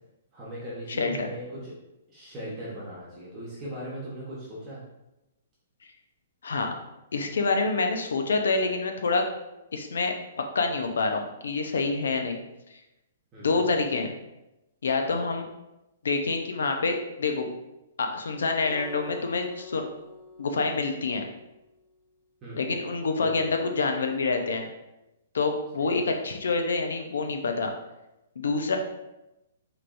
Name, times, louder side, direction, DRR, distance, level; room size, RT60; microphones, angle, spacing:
voice 1, 0.3-1.7 2.1-4.8 13.3-13.7 22.4-22.6 23.2-23.5 25.8-26.1, right 1 dB, 20° right, -8 dB, 1.1 m, -39 dB
voice 2, 1.0-1.3 6.4-6.7 7.1-9.2 9.7-10.1 10.5-12.4 13.4-14.1 14.8-15.4 16.0-17.5 18.0-19.9 20.4-21.3 22.6-24.7 25.3-27.7 28.4-28.8, left 3 dB, 85° left, 4 dB, 0.6 m, -27 dB
Acoustic guitar, 18.6-21.9, left 4 dB, 15° left, 1.3 m, -47 dB
4.6 x 3.0 x 2.6 m, 0.95 s
hypercardioid pair, 155°, 0 cm